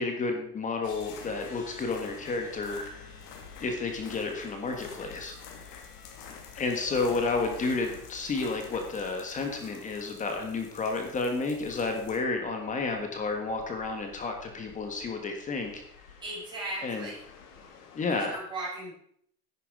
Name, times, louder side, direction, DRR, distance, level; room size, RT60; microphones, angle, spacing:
voice 1, 0.0-3.2 3.6-5.3 6.5-15.8 16.8-17.1 17.9-18.4, left 3 dB, 15° left, 4 dB, 1.5 m, -31 dB
sound 1, 0.8-18.3, left 6 dB, 75° left, 3.1 m, -48 dB
voice 2, 16.2-17.2 18.1-18.9, right 2 dB, 10° right, -7 dB, 5.6 m, -37 dB
10.5 x 9.7 x 4.8 m, 0.67 s
supercardioid pair, 165°, 47 cm